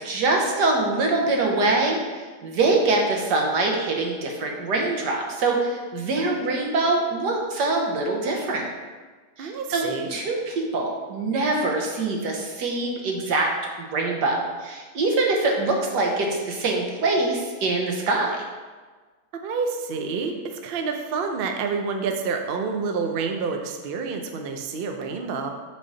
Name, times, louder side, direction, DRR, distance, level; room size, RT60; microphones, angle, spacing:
voice 1, 0.0-8.7 9.4-13.5 13.8-18.5, right 3 dB, 90° right, 0 dB, 1.6 m, -24 dB
voice 2, 9.4-10.1 19.4-20.3 20.6-25.5, right 5 dB, 65° right, 4 dB, 0.5 m, -28 dB
8.3 x 3.8 x 3.9 m, 1.4 s
omnidirectional pair, 1.8 m